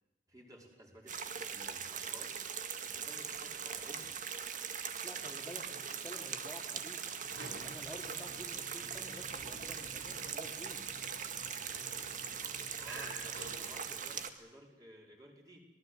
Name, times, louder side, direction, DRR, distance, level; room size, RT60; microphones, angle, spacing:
voice 1, 0.3-4.1 12.8-15.6, equal, 20° right, 0 dB, 5.2 m, -56 dB
sound 1, 1.1-14.3, right 7 dB, 45° right, 1.9 m, -41 dB
voice 2, 5.0-7.1 7.6-10.8, equal, 10° left, -1 dB, 3.0 m, -51 dB
sound 2, 7.2-14.4, right 1 dB, 75° right, 6.2 m, -52 dB
26.5 x 19.0 x 8.0 m, 1.0 s
head